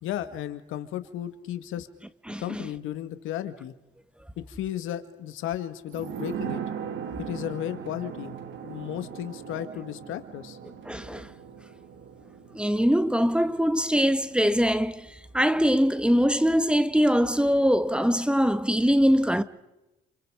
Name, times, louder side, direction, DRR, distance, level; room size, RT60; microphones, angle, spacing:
voice 1, 0.0-1.9 2.4-3.7 4.4-6.6 7.2-8.3 8.6-10.6, left 11 dB, 90° left, 2.0 m, -34 dB
voice 2, 2.3-2.7 10.8-11.3 12.5-19.4, equal, 5° right, 1.5 m, -23 dB
sound 1, 5.9-15.2 15.5-15.6, right 8 dB, 75° right, 2.7 m, -39 dB
29.5 x 29.0 x 5.0 m
cardioid pair, 90°, 20 cm